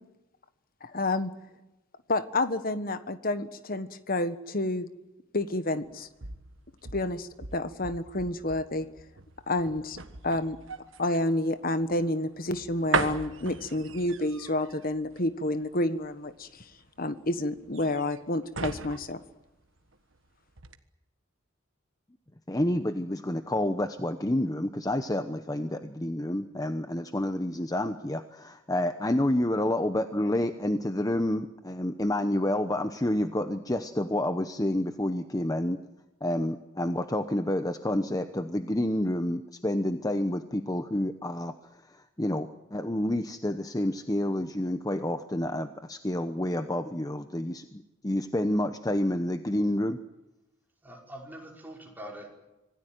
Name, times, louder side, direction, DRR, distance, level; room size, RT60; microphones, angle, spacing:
voice 1, 0.8-1.3 2.1-4.9 5.3-6.1 6.9-8.9 9.5-10.0 10.2-10.6 11.0-16.6 17.0-19.2, left 2 dB, 45° left, 11 dB, 1.4 m, -29 dB
sound 1, 5.8-20.2 20.5-20.8, right 4 dB, 70° right, 1.5 m, -38 dB
voice 2, 22.5-35.8 36.2-41.5 41.9-50.0, left 1 dB, 20° left, 8 dB, 0.9 m, -29 dB
voice 3, 50.8-52.3, right 1 dB, 10° right, -1 dB, 5.4 m, -43 dB
26.0 x 18.0 x 9.3 m, 0.98 s
head